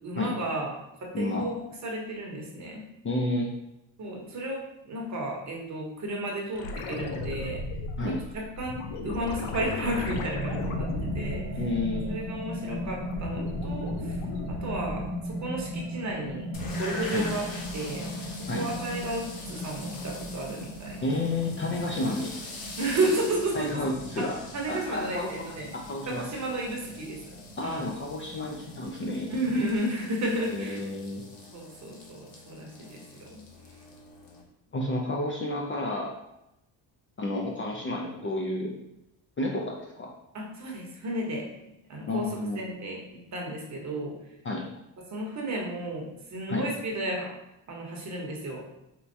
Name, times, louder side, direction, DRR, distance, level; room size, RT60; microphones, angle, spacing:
voice 1, 0.0-0.7 1.0-2.8 4.0-7.6 8.1-10.9 11.1-11.6 12.1-14.2 14.5-16.5 16.8-18.1 18.5-21.0 22.8-23.9 24.2-25.7 26.1-27.3 27.6-27.9 29.3-30.8 31.5-33.4 40.3-44.1 45.1-47.3 47.7-48.6, right 1 dB, 35° right, -1 dB, 0.9 m, -33 dB
voice 2, 3.0-3.5 8.0-8.2 11.6-12.1 17.1-17.2 18.5-18.7 21.0-22.4 23.5-24.4 24.7-25.4 25.7-26.2 27.6-29.3 30.5-31.2 34.7-36.1 37.2-38.7 39.4-40.1 42.1-42.6 44.4-44.6 46.5-46.7, left 2 dB, 30° left, -1 dB, 0.4 m, -30 dB
sound 1, 6.5-12.3 12.7-15.2 17.7-17.8, left 3 dB, 85° left, 0.6 m, -36 dB
sound 2, 10.3-29.7, equal, 75° right, 0.9 m, -38 dB
sound 3, 16.5-34.4, left 2 dB, 45° left, 0.9 m, -44 dB
4.3 x 2.2 x 2.6 m, 0.86 s
cardioid pair, 110°, 46 cm